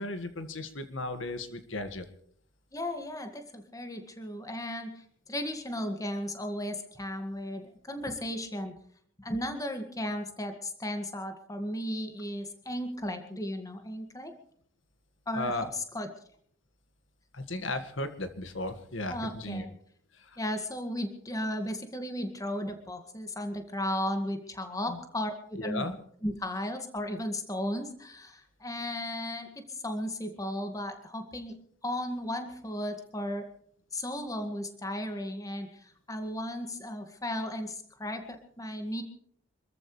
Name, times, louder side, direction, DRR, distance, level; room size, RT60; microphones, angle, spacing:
voice 1, 0.0-2.1 15.3-15.7 17.3-19.7 20.1-20.4 24.7-25.0 25.6-26.0, left 2 dB, 70° left, 9 dB, 1.8 m, -35 dB
voice 2, 2.7-8.8 9.2-14.3 15.3-16.1 19.1-19.7 20.4-25.9 26.2-31.5 31.8-33.5 33.9-39.0, left 1 dB, 15° left, 6 dB, 2.0 m, -35 dB
27.0 x 14.0 x 3.3 m, 0.63 s
head